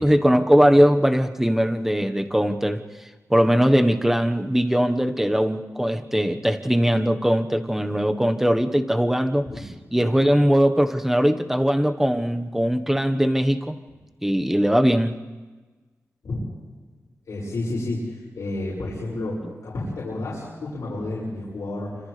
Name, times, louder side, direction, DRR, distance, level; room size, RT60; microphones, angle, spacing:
voice 1, 0.0-2.8 3.3-9.5 9.9-13.8 14.2-15.2 19.4-19.5, equal, 5° right, 6 dB, 1.3 m, -20 dB
voice 2, 17.3-22.0, left 2 dB, 90° left, -8 dB, 5.9 m, -30 dB
30.0 x 26.0 x 3.4 m, 1.3 s
wide cardioid pair, 80°, 6 cm